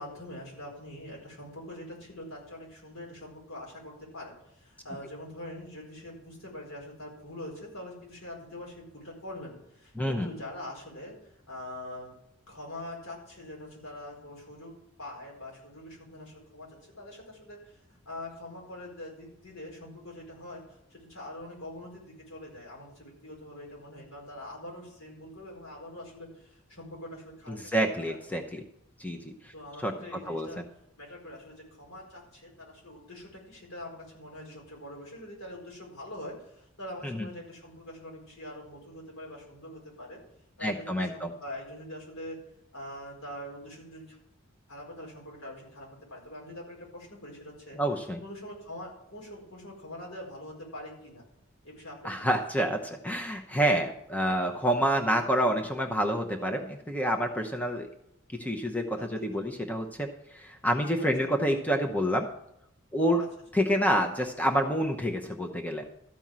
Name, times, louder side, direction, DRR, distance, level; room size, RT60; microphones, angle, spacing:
voice 1, 0.0-12.1 12.5-20.6 20.9-28.2 29.5-30.6 31.0-40.2 40.6-42.4 42.7-44.2 44.7-47.8 48.2-51.2 51.6-52.4 58.9-59.1 59.3-59.4 61.0-61.4 63.2-63.3, left 1 dB, 85° left, -2 dB, 4.6 m, -44 dB
voice 2, 10.0-10.3 27.5-28.6 29.0-29.5 29.8-29.9 30.3-30.6 37.0-37.3 40.6-41.3 47.8-48.2 52.0-57.9 58.4-62.3 62.9-63.2 63.5-65.8, equal, 10° left, 4 dB, 0.8 m, -28 dB
13.5 x 5.4 x 7.5 m, 0.76 s
head